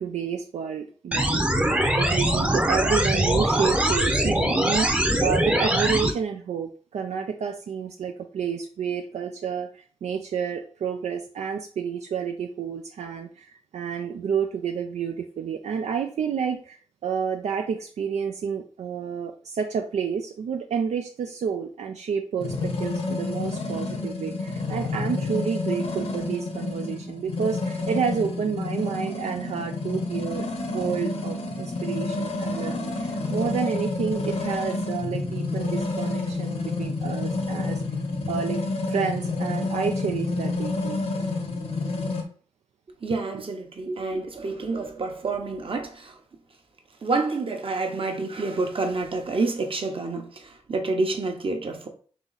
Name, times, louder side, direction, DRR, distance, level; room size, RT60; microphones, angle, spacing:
voice 1, 0.0-1.5 2.0-37.8 38.3-38.6 38.9-41.0 43.3-43.4, right 7 dB, 85° right, 0.4 m, -30 dB
sound 1, 1.1-6.1, right 1 dB, 10° right, 0.7 m, -22 dB
sound 2, 22.4-42.2, left 3 dB, 70° left, 1.0 m, -29 dB
voice 2, 43.0-46.1 47.0-50.3 50.7-51.9, right 3 dB, 55° right, 0.9 m, -28 dB
3.9 x 3.0 x 4.0 m
cardioid pair, 65°, 11 cm